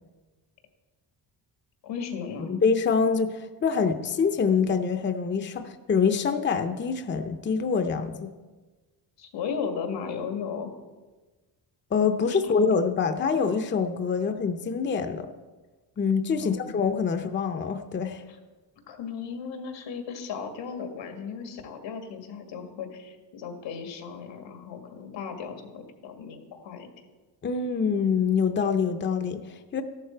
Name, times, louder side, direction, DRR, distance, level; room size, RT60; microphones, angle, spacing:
voice 1, 1.8-2.5 9.2-10.8 12.2-12.5 16.4-16.6 18.3-18.4 18.9-26.9, left 6 dB, 90° left, 4 dB, 2.0 m, -36 dB
voice 2, 2.5-8.3 11.9-15.3 16.0-18.2 27.4-29.8, left 5 dB, 25° left, 7 dB, 0.6 m, -25 dB
14.0 x 11.5 x 4.5 m, 1.3 s
cardioid pair, 145°, 43 cm